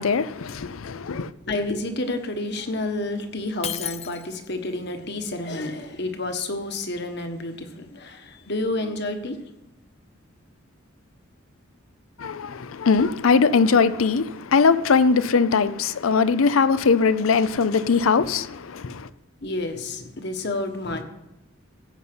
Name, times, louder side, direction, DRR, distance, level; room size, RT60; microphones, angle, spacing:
voice 1, 0.0-1.3 12.2-19.1, left 5 dB, 85° left, 0.6 m, -20 dB
voice 2, 1.5-9.4 19.4-21.0, left 2 dB, 55° left, 1.4 m, -30 dB
Shatter, 3.6-4.7, left 11 dB, 30° left, 0.4 m, -33 dB
15.0 x 5.5 x 7.9 m
head